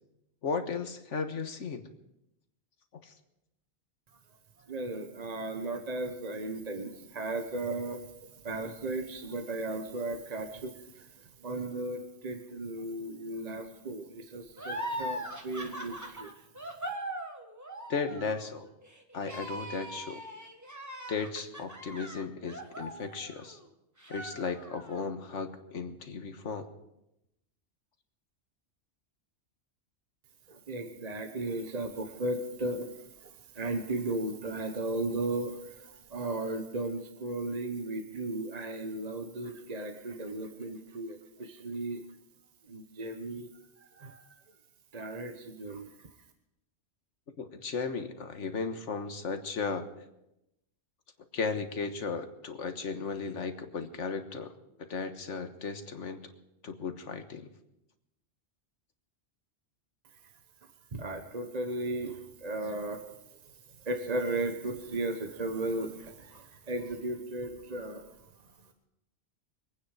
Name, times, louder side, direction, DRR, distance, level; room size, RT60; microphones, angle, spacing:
voice 1, 0.4-1.8 3.0-3.1 17.9-18.7 19.1-20.2 21.1-23.6 24.1-26.7 47.4-49.9 51.3-54.5 54.8-56.2 56.6-57.5, left 5 dB, 85° left, 7 dB, 1.6 m, -35 dB
voice 2, 4.7-8.0 8.4-10.7 11.4-16.3 30.7-32.9 33.6-35.7 36.1-42.0 42.7-43.5 44.0-44.2 44.9-45.9 60.9-63.0 63.9-68.0, right 2 dB, 35° right, 6 dB, 1.1 m, -35 dB
sound 1, 14.6-23.6 24.0-25.0, right 1 dB, 15° right, 1.5 m, -40 dB
24.5 x 9.4 x 4.9 m, 0.87 s
omnidirectional pair, 1.2 m